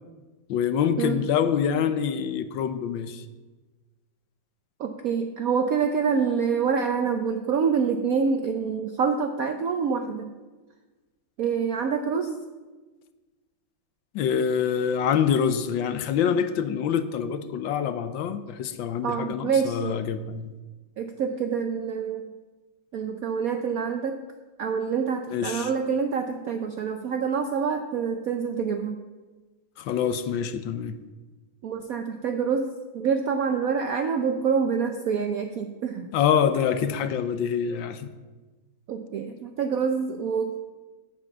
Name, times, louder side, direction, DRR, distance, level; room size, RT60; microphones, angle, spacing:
voice 1, 0.5-3.2 14.1-20.5 25.3-25.7 29.8-31.0 36.1-38.1, left 8 dB, 70° left, 11 dB, 1.3 m, -25 dB
voice 2, 4.8-10.3 11.4-12.4 19.0-20.0 21.0-22.3 22.9-24.2 24.6-29.0 31.6-36.1 38.9-40.6, right 6 dB, 70° right, 6 dB, 0.8 m, -26 dB
8.6 x 8.0 x 7.1 m, 1.3 s
omnidirectional pair, 2.3 m